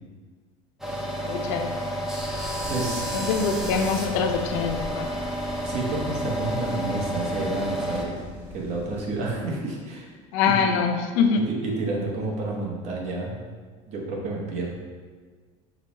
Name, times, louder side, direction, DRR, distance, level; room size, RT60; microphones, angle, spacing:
sound 1, 0.8-8.1, equal, ahead, 0.5 m, -30 dB
voice 1, 1.2-1.8 3.1-5.1 10.3-11.4, left 6 dB, 80° left, 5 dB, 0.5 m, -24 dB
sound 2, 2.1-9.0, left 2 dB, 15° left, 1.2 m, -41 dB
voice 2, 2.7-3.1 5.6-8.2 8.5-10.1 10.4-10.7 11.5-13.4 13.9-14.7, right 2 dB, 50° right, -1 dB, 0.9 m, -30 dB
5.0 x 2.2 x 4.1 m, 1.5 s
cardioid pair, 155°, 15 cm